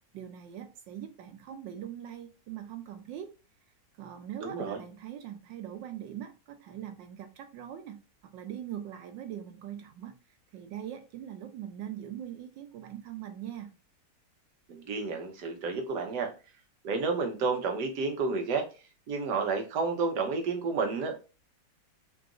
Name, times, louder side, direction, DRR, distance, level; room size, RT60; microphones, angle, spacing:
voice 1, 0.1-3.3 4.0-8.0 8.3-10.2 10.5-13.7, right 10 dB, 90° right, 1.4 m, -41 dB
voice 2, 4.4-4.8 14.7-16.3 16.8-18.7 19.1-21.2, right 4 dB, 70° right, 1.4 m, -30 dB
3.9 x 2.5 x 3.7 m
omnidirectional pair, 1.9 m